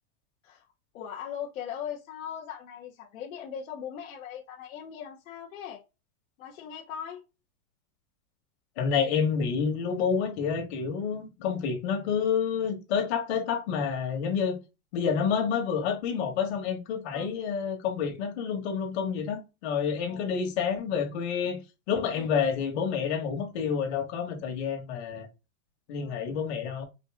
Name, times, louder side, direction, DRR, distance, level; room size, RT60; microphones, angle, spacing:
voice 1, 0.9-5.8 6.4-7.2 17.1-17.3 20.1-20.3 22.1-22.3 26.0-26.2, left 8 dB, 60° left, 1.2 m, -39 dB
voice 2, 8.8-14.6 14.9-21.6 21.9-25.3 25.9-26.8, left 6 dB, 45° left, 1.7 m, -29 dB
5.1 x 2.7 x 3.7 m
supercardioid pair, 170°, 44 cm